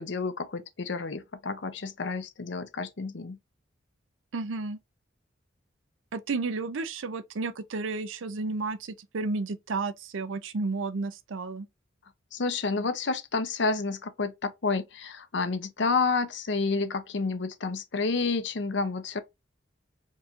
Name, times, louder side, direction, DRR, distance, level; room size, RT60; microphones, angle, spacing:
voice 1, 0.0-3.4 12.3-19.2, left 4 dB, 65° left, 0.7 m, -30 dB
voice 2, 4.3-4.8 6.1-11.7, right 3 dB, 85° right, 0.6 m, -32 dB
4.6 x 2.6 x 2.8 m
head